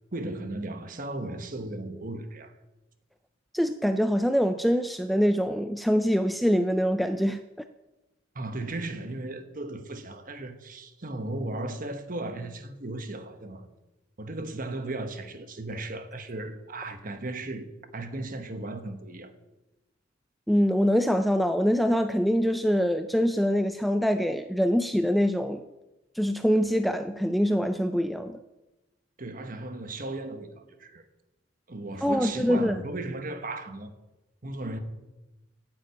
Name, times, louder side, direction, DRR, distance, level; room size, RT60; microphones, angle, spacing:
voice 1, 0.1-2.5 8.3-13.7 14.2-19.3 29.2-31.0 31.7-33.9 34.4-34.8, right 2 dB, 45° right, 1.2 m, -36 dB
voice 2, 3.5-7.4 20.5-25.7 26.2-28.4 32.0-32.8, equal, ahead, 0.3 m, -24 dB
9.5 x 7.6 x 8.7 m
head